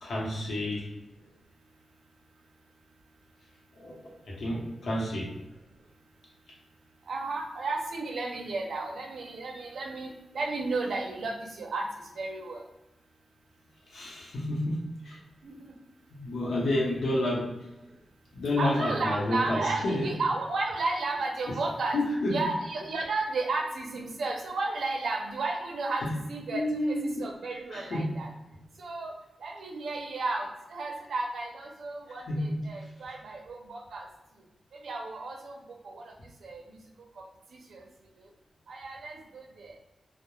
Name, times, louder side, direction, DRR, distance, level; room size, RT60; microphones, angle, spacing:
voice 1, 0.0-0.9 3.7-3.9 4.3-5.3 13.9-15.2 16.1-17.5 18.3-20.1 21.5-21.6 21.9-22.5 26.0-26.1 26.5-27.3 27.7-28.1 32.3-32.9, left 1 dB, 75° left, -3 dB, 0.7 m, -30 dB
voice 2, 7.1-11.9 12.1-12.6 15.4-15.7 18.6-22.0 22.3-28.3 28.8-29.1 29.4-34.0 34.7-35.6 35.8-36.1 36.4-36.8 37.7-37.9 38.2-38.3 38.7-39.8, right 3 dB, 80° right, 1 dB, 0.5 m, -33 dB
2.2 x 2.0 x 3.0 m, 0.98 s
wide cardioid pair, 150°, 0 cm